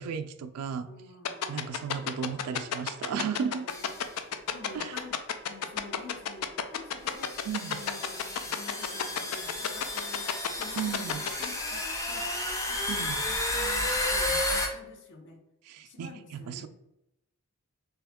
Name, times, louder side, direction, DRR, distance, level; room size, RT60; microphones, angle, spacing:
voice 1, 0.0-0.9 1.5-3.7 4.7-5.0 7.5-7.8 10.8-11.2 12.9-13.2 15.7-16.7, right 7 dB, 90° right, 9 dB, 0.3 m, -34 dB
voice 2, 0.8-1.8 3.3-4.1 4.5-7.4 7.7-12.3 12.7-15.4 15.9-16.7, left 3 dB, 55° left, 4 dB, 0.7 m, -48 dB
sound 1, 1.2-11.5, left 9 dB, 90° left, 0.4 m, -30 dB
sound 2, 3.7-4.0 5.0-5.1 6.2-6.3 7.1-14.7, left 1 dB, 15° left, 0.5 m, -32 dB
3.4 x 3.0 x 3.5 m, 0.85 s
head